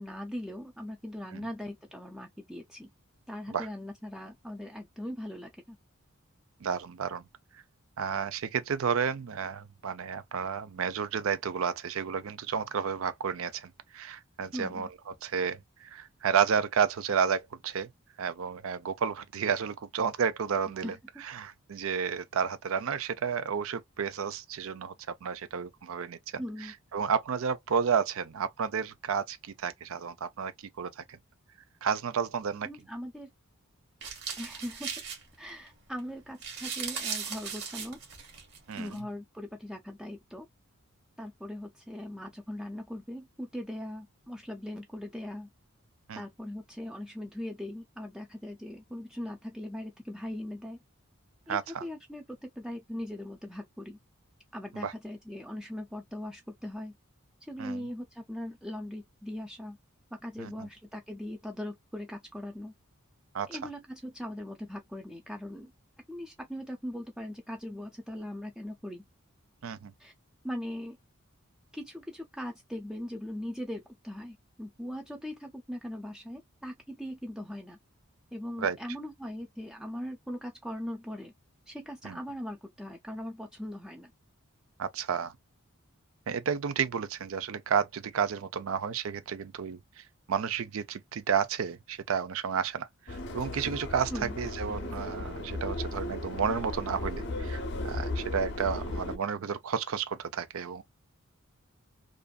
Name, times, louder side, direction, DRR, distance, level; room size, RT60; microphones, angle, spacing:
voice 1, 0.0-2.9 3.3-5.8 14.5-14.9 20.8-21.2 26.4-26.7 32.6-33.3 34.4-34.9 35.4-38.0 38.8-40.5 41.2-45.5 46.1-50.8 51.5-54.0 54.5-56.9 57.5-59.8 60.1-62.7 63.5-65.7 66.1-69.0 70.0-70.1 70.4-71.0 71.7-77.8 78.3-81.3 81.7-84.1 94.1-94.4, left 1 dB, 5° right, 0.4 m, -40 dB
voice 2, 6.6-7.2 8.0-14.9 15.2-17.9 18.2-24.9 25.2-26.4 26.9-31.2 31.8-32.7 38.7-39.0 46.1-46.2 51.5-51.8 54.7-54.9 57.6-57.9 60.4-60.7 63.3-63.6 69.6-69.9 78.6-78.8 82.0-82.2 84.8-85.3 86.3-100.8, right 6 dB, 70° right, 0.5 m, -31 dB
sound 1, 34.0-35.7 36.0-36.1 36.3-39.0, right 6 dB, 55° right, 1.2 m, -38 dB
Subway metro underground, 93.1-99.2, left 2 dB, 55° left, 0.6 m, -36 dB
2.5 x 2.4 x 2.3 m
head